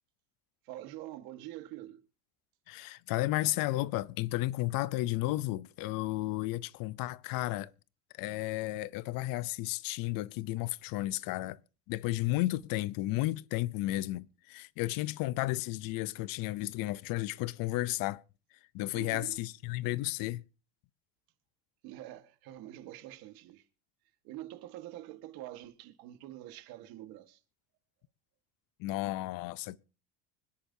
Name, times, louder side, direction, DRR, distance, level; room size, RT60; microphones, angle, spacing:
voice 1, 0.6-2.0 18.9-19.4 21.8-23.6 24.2-27.4, right 14 dB, 65° right, 1.6 m, -46 dB
voice 2, 2.7-7.7 8.2-11.6 11.9-18.2 18.7-20.4 28.8-29.8, left 17 dB, 60° left, 0.6 m, -33 dB
25.5 x 10.0 x 2.7 m
cardioid pair, 155°, 39 cm